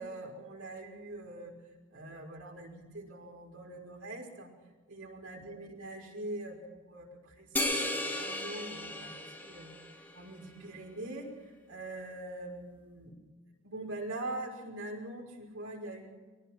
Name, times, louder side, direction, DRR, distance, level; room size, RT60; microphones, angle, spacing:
voice 1, 0.0-1.5 1.9-4.5 4.9-9.7 10.1-13.1 13.6-16.1, right 2 dB, 85° right, 0 dB, 5.8 m, -43 dB
sound 1, 7.6-10.3, left 1 dB, 10° left, 2.8 m, -35 dB
24.5 x 19.0 x 6.2 m, 1.3 s
head